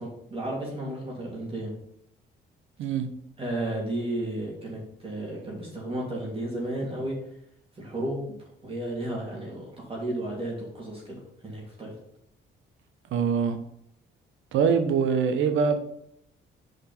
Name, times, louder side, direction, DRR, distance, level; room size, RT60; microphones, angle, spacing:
voice 1, 0.0-1.7 3.4-7.1 7.8-8.3 8.6-12.0, right 1 dB, 30° right, -4 dB, 2.9 m, -33 dB
voice 2, 13.1-13.6 14.5-15.8, right 6 dB, 80° right, 7 dB, 1.0 m, -23 dB
5.4 x 5.1 x 5.5 m, 0.75 s
cardioid pair, 90°, 20 cm